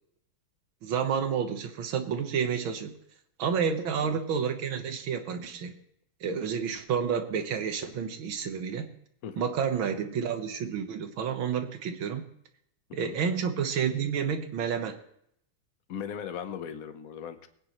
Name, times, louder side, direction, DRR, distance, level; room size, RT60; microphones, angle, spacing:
voice 1, 0.8-2.9 3.4-5.7 6.2-8.9 9.4-12.2 12.9-15.0, right 7 dB, 85° right, 8 dB, 2.0 m, -30 dB
voice 2, 9.2-9.5 12.9-13.2 15.9-17.5, left 8 dB, 55° left, 9 dB, 1.2 m, -38 dB
22.5 x 9.7 x 3.1 m, 0.72 s
omnidirectional pair, 2.1 m